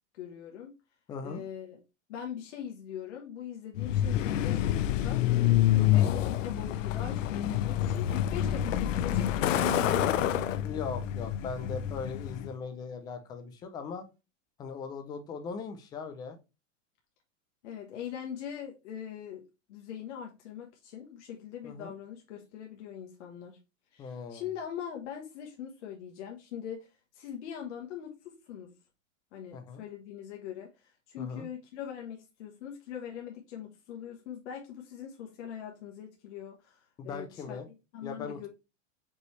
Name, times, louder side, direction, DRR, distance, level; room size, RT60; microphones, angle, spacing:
voice 1, 0.2-0.7 1.2-1.8 2.1-10.3 17.6-23.6 23.9-28.7 29.3-37.6 37.9-38.5, left 9 dB, 65° left, 1.2 m, -42 dB
voice 2, 1.1-1.4 5.8-6.1 10.6-14.1 14.6-16.4 21.6-21.9 24.0-24.4 29.5-29.8 31.2-31.5 37.0-37.7 38.0-38.5, left 5 dB, 10° left, 0.3 m, -39 dB
Truck, 3.8-12.5, left 12 dB, 85° left, 0.6 m, -27 dB
Marimba xylophone / Wood, 9.5-12.3, right 7 dB, 70° right, 0.7 m, -43 dB
5.3 x 3.1 x 3.1 m
supercardioid pair, 145°, 37 cm